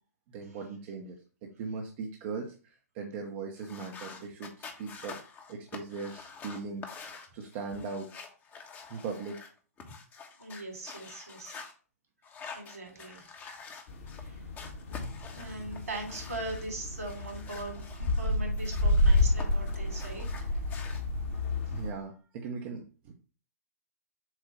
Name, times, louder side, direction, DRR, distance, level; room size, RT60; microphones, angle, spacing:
voice 1, 0.3-5.2 5.5-6.9 7.3-8.1 8.9-9.4 15.4-15.6 21.7-23.1, right 4 dB, 40° right, 1 dB, 1.1 m, -39 dB
sound 1, 3.6-11.7 12.2-14.2 14.5-16.7 17.0-19.5 19.7-21.0, left 5 dB, 20° left, 1.2 m, -47 dB
voice 2, 10.4-11.6 12.5-13.3 14.2-14.4 15.4-20.2, right 2 dB, 75° right, 1 dB, 3.4 m, -40 dB
sound 2, 13.9-21.9, left 1 dB, 50° left, 1.8 m, -30 dB
7.4 x 2.6 x 5.3 m, 0.37 s
figure-of-eight pair, 115°, 8 cm